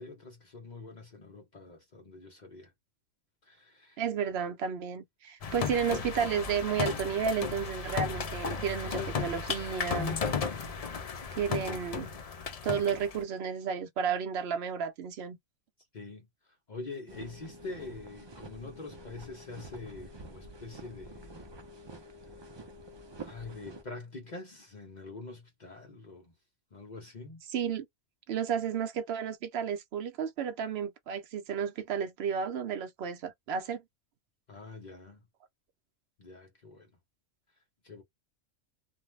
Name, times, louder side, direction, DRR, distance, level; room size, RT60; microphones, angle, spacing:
voice 1, 0.0-2.7 3.4-4.0 15.9-16.3 16.7-21.5 23.2-26.3 26.7-27.4 34.5-35.2 36.2-36.9 37.8-38.0, left 3 dB, 45° left, 0.8 m, -45 dB
voice 2, 4.0-10.2 11.3-12.1 12.6-15.4 27.5-27.9 28.3-33.8, right 7 dB, 60° right, 0.8 m, -32 dB
sound 1, 5.4-13.2, left 5 dB, 70° left, 0.3 m, -34 dB
sound 2, 17.1-23.8, right 1 dB, 40° right, 0.3 m, -48 dB
2.5 x 2.1 x 3.1 m
omnidirectional pair, 1.3 m